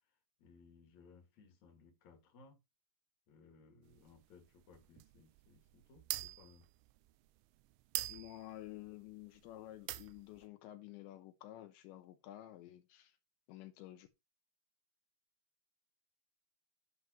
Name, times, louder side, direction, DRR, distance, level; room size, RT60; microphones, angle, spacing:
voice 1, 0.4-2.6 3.3-6.6, left 4 dB, 50° left, 3.0 m, -62 dB
sound 1, 3.9-9.5 9.8-10.5, right 18 dB, 90° right, 3.0 m, -44 dB
voice 2, 8.1-13.2 13.5-14.1, left 15 dB, 80° left, 3.2 m, -51 dB
9.7 x 7.5 x 3.1 m
omnidirectional pair, 5.1 m